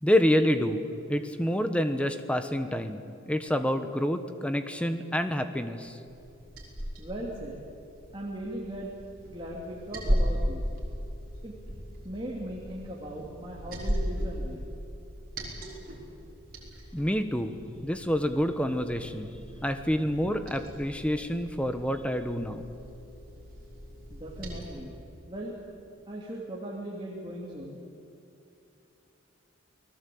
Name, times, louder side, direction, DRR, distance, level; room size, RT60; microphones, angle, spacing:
voice 1, 0.0-6.0 16.9-19.3 19.6-22.6, equal, 5° left, 8 dB, 1.2 m, -28 dB
Liquid, 6.1-24.7, equal, 45° right, 5.5 m, -37 dB
voice 2, 7.0-7.6 8.1-9.0 9.3-10.6 11.4-11.6 12.0-14.7 19.5-19.6 24.1-24.9 25.3-25.5 26.1-27.8, right 1 dB, 25° right, -3 dB, 3.0 m, -38 dB
29.0 x 20.0 x 8.6 m, 2.8 s
head